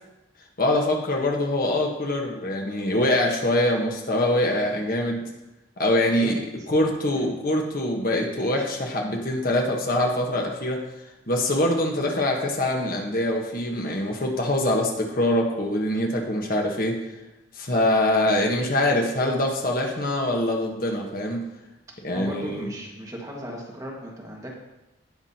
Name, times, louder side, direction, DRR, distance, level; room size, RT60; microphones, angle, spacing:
voice 1, 0.6-5.2 5.8-6.4 6.7-10.8 11.3-17.0 17.6-21.4 22.0-22.7, left 1 dB, 50° left, 1 dB, 1.3 m, -24 dB
voice 2, 6.2-6.7 7.2-7.3 22.1-24.5, equal, 15° right, -3 dB, 1.7 m, -36 dB
18.0 x 6.0 x 2.9 m, 0.95 s
head